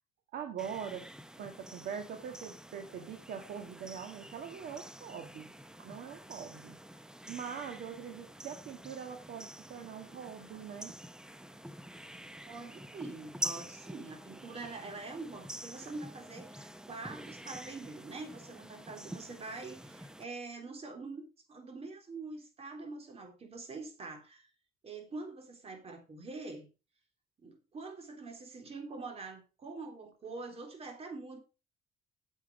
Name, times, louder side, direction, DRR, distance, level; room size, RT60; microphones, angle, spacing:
voice 1, 0.3-1.1 1.4-5.5 5.8-6.8 7.3-10.9, right 7 dB, 65° right, 4 dB, 1.8 m, -43 dB
sound 1, 0.6-20.2, equal, 5° right, 0.6 m, -47 dB
voice 2, 12.5-21.2 21.5-24.5 24.8-26.7 27.4-31.4, right 3 dB, 35° right, 3 dB, 3.7 m, -44 dB
9.2 x 7.4 x 4.8 m, 0.32 s
cardioid pair, 110°, 17 cm